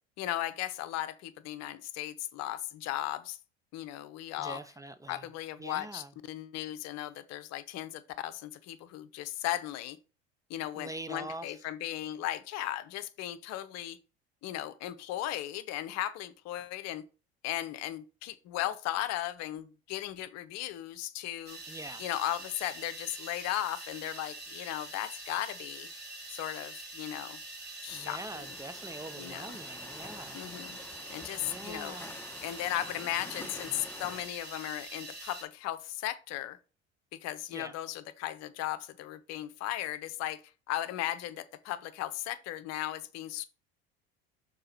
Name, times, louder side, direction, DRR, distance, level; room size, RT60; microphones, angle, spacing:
voice 1, 0.2-3.4 3.7-4.6 5.1-10.0 10.5-14.0 14.4-17.0 17.4-21.6 22.0-25.9 26.3-27.4 27.8-28.2 29.2-29.6 30.3-30.8 31.1-32.0 32.4-36.6 37.2-40.4 40.7-43.4, left 13 dB, 55° left, 0.8 m, -36 dB
voice 2, 4.4-5.3 5.6-6.1 10.8-11.6 20.0-20.1 21.7-22.0 27.9-30.4 31.4-32.2 37.5-37.8, right 2 dB, 10° right, 0.6 m, -44 dB
sound 1, 21.5-35.4, right 2 dB, 30° right, 3.3 m, -45 dB
sound 2, 27.9-34.3, left 2 dB, 5° left, 1.3 m, -48 dB
6.7 x 4.0 x 4.3 m
hypercardioid pair, 70°, 31 cm